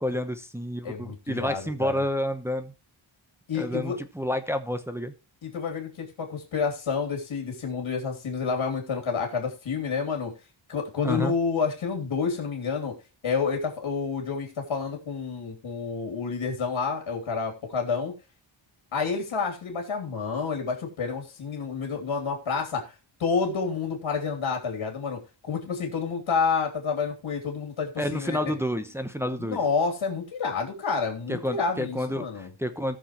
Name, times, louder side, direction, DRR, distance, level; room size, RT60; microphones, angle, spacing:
voice 1, 0.0-2.7 3.5-5.1 11.0-11.3 28.0-29.6 31.3-33.0, equal, 5° right, 6 dB, 0.9 m, -29 dB
voice 2, 0.8-2.0 3.5-4.0 5.4-10.3 10.7-12.9 13.2-18.1 18.9-22.9 23.2-28.6 29.4-32.5, left 5 dB, 70° left, 2 dB, 3.0 m, -29 dB
18.5 x 6.3 x 3.0 m, 0.31 s
wide cardioid pair, 165°, 48 cm